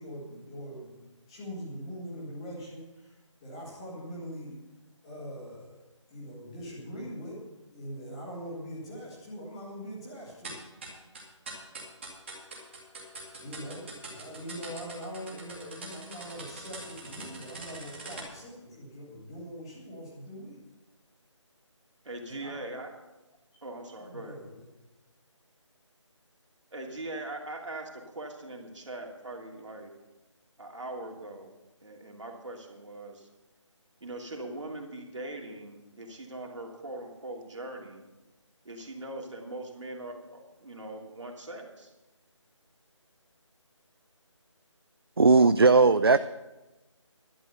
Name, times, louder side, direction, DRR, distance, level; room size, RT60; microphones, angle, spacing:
voice 1, 0.0-4.6 5.0-5.8 6.1-10.6 13.4-20.6 22.3-22.7 23.5-23.6 23.9-24.6, equal, 10° left, -6 dB, 2.1 m, -42 dB
sound 1, 10.4-18.2, right 2 dB, 20° right, 2.3 m, -43 dB
voice 2, 22.0-23.0 23.6-24.4 26.7-29.9 30.6-31.5 31.8-33.3 34.0-38.0 38.6-41.9, right 2 dB, 65° right, 1 dB, 2.9 m, -41 dB
voice 3, 45.2-46.2, right 4 dB, 50° right, 14 dB, 0.4 m, -18 dB
11.5 x 9.8 x 6.6 m, 1.1 s
figure-of-eight pair, 175°, 16 cm